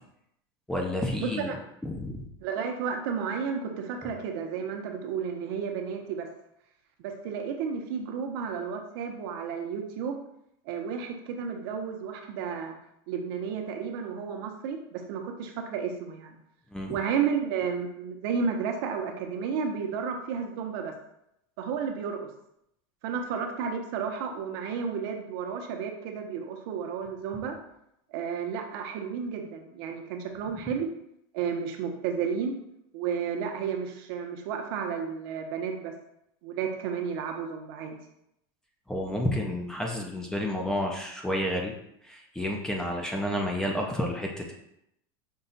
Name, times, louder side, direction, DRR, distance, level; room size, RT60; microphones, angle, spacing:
voice 1, 0.7-1.6 1.8-2.2 16.7-17.0 38.9-41.7 42.0-44.5, left 1 dB, 5° left, 0 dB, 0.4 m, -30 dB
voice 2, 1.2-1.6 2.4-6.3 7.0-10.2 10.7-12.7 13.1-16.4 16.9-20.9 21.6-22.3 23.0-27.6 28.1-30.9 31.3-32.6 32.9-35.9 36.4-38.0, right 6 dB, 65° right, 4 dB, 0.7 m, -32 dB
5.4 x 2.3 x 3.9 m, 0.78 s
supercardioid pair, 155°, 13 cm